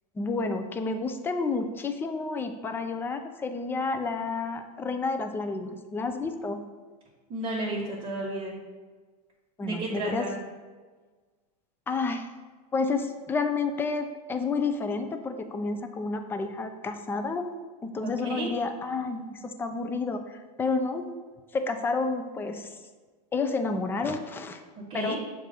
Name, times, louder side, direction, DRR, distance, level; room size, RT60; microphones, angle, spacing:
voice 1, 0.2-6.6 9.6-10.3 11.9-12.3 12.7-17.6 17.8-21.1 21.5-22.7 23.3-24.6 24.9-25.2, left 4 dB, 10° left, 7 dB, 0.3 m, -30 dB
voice 2, 7.3-8.5 9.6-10.4 18.0-18.5 24.9-25.2, right 2 dB, 25° right, -7 dB, 1.3 m, -32 dB
7.2 x 2.6 x 5.0 m, 1.4 s
supercardioid pair, 125°, 21 cm